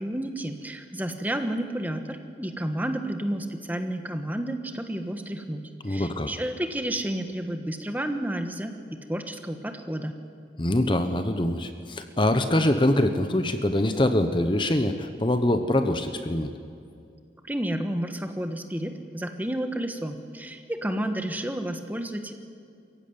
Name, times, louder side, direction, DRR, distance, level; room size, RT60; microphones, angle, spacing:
voice 1, 0.0-10.2 17.4-22.3, right 1 dB, 10° right, 6 dB, 1.2 m, -31 dB
voice 2, 5.8-6.3 10.6-16.5, left 1 dB, 25° left, 8 dB, 0.9 m, -24 dB
22.5 x 15.5 x 9.5 m, 2.5 s
head